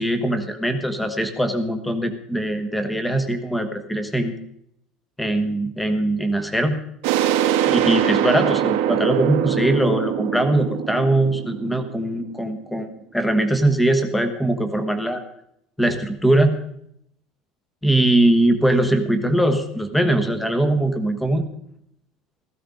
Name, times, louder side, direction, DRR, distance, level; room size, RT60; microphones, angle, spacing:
voice 1, 0.0-4.3 5.2-6.8 7.7-15.2 15.8-16.6 17.8-21.5, right 1 dB, 5° left, 8 dB, 1.2 m, -21 dB
sound 1, 7.0-12.5, right 10 dB, 80° right, 1.2 m, -23 dB
16.5 x 14.5 x 3.8 m, 0.72 s
cardioid pair, 175°, 0 cm